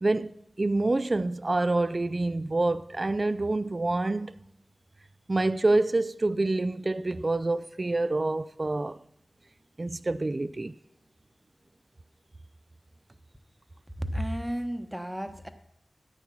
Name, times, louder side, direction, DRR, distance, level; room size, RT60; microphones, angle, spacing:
voice 1, 0.0-4.3 5.3-9.0 9.8-10.7, right 2 dB, 35° right, 0.4 m, -27 dB
voice 2, 14.0-15.5, equal, 5° right, 1.0 m, -32 dB
14.0 x 9.0 x 6.0 m
wide cardioid pair, 80°, 0 cm